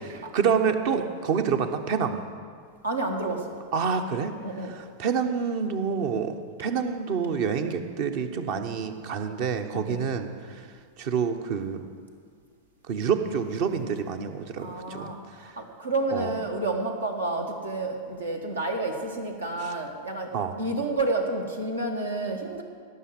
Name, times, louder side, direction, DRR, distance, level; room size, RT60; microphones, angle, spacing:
voice 1, 0.0-2.2 3.7-4.3 4.7-10.7 11.0-11.8 12.9-15.1 15.4-15.5 16.1-16.3 20.3-20.5, right 6 dB, 50° right, 7 dB, 1.1 m, -27 dB
voice 2, 2.8-3.6 4.4-4.7 9.7-10.0 14.6-20.3 20.6-22.6, right 2 dB, 75° right, 3 dB, 1.7 m, -30 dB
17.0 x 6.6 x 7.7 m, 2.1 s
figure-of-eight pair, 90°, 0 cm